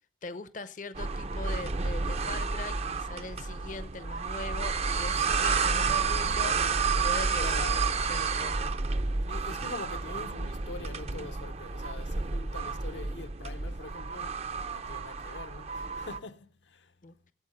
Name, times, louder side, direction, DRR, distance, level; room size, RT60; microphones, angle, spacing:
voice 1, 0.2-6.6 7.0-7.8 8.1-8.7 17.0-17.1, left 3 dB, 40° left, 0.6 m, -41 dB
sound 1, 0.9-16.2, right 4 dB, 35° right, 0.5 m, -30 dB
voice 2, 7.3-7.8 9.3-16.9, left 3 dB, 75° left, 0.8 m, -44 dB
12.5 x 8.1 x 6.5 m
head